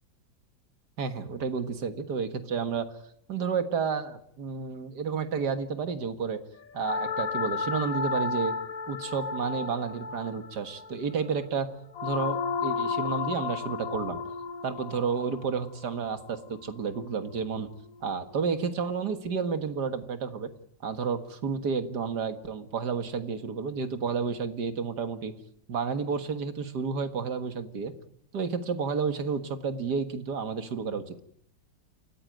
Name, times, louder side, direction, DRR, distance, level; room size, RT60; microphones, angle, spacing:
voice 1, 1.0-2.9 3.3-6.4 6.7-8.6 8.9-11.7 12.0-14.2 14.6-17.7 18.0-20.5 20.8-25.3 25.7-27.9 28.3-31.2, right 5 dB, 65° right, 10 dB, 2.2 m, -31 dB
sound 1, 6.8-17.0, left 5 dB, 50° left, 1.6 m, -33 dB
28.5 x 14.5 x 9.0 m, 0.70 s
omnidirectional pair, 1.9 m